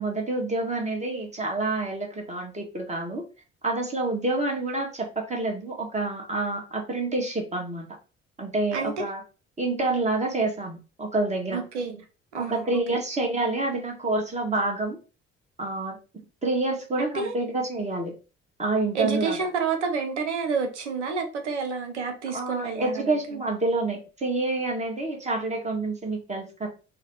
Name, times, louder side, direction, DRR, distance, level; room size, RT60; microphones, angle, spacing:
voice 1, 0.0-3.2 3.6-7.9 8.4-9.2 9.6-11.6 12.3-15.0 15.6-16.0 16.4-18.1 18.6-19.4 22.3-26.7, right 2 dB, 20° right, 1.4 m, -28 dB
voice 2, 8.7-9.0 11.5-12.0 12.3-13.0 17.0-17.4 18.9-23.0 23.3-23.4, right 5 dB, 80° right, 0.7 m, -29 dB
4.0 x 2.2 x 4.0 m
figure-of-eight pair, 45°, 34 cm